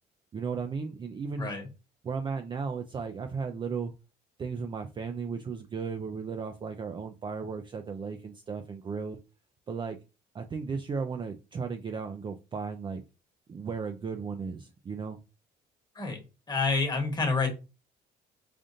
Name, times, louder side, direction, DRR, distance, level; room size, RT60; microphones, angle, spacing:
voice 1, 0.3-1.5 2.0-3.9 4.4-9.2 9.7-10.0 10.3-13.0 13.5-15.2, right 5 dB, 30° right, 0.4 m, -35 dB
voice 2, 1.4-1.7 15.9-16.2 16.5-17.5, left 4 dB, 25° left, 1.3 m, -28 dB
5.0 x 2.5 x 2.6 m
cardioid pair, 110°, 17 cm